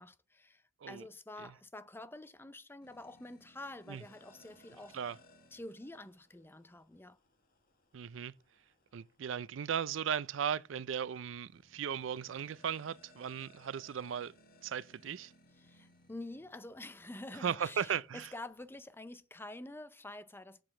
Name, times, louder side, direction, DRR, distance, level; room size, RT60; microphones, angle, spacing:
voice 1, 0.0-5.0 5.5-7.2 15.6-20.6, left 2 dB, 10° left, 0.6 m, -48 dB
sound 1, 2.8-19.0, left 1 dB, 50° left, 1.9 m, -65 dB
voice 2, 7.9-8.3 8.9-14.3 14.6-15.3 17.4-18.3, right 8 dB, 75° right, 0.4 m, -37 dB
7.7 x 5.0 x 7.1 m
head